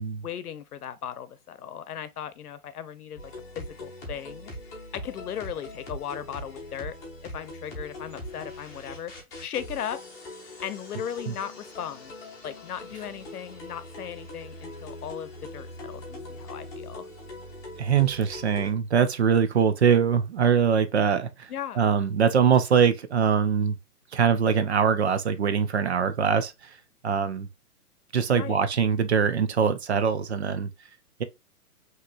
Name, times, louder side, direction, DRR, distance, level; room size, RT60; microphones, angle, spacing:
voice 1, 0.0-4.5 4.9-7.0 7.2-9.1 9.4-10.0 10.6-12.1 12.4-17.1 21.5-21.8 28.3-28.6, left 9 dB, 70° left, 0.9 m, -37 dB
sound 1, 3.2-18.7, left 1 dB, 5° left, 0.8 m, -41 dB
voice 2, 17.8-21.5 21.8-23.7 24.1-26.7 27.0-27.5 28.1-30.7, right 7 dB, 45° right, 0.6 m, -23 dB
5.7 x 3.1 x 2.4 m
hypercardioid pair, 165°, 46 cm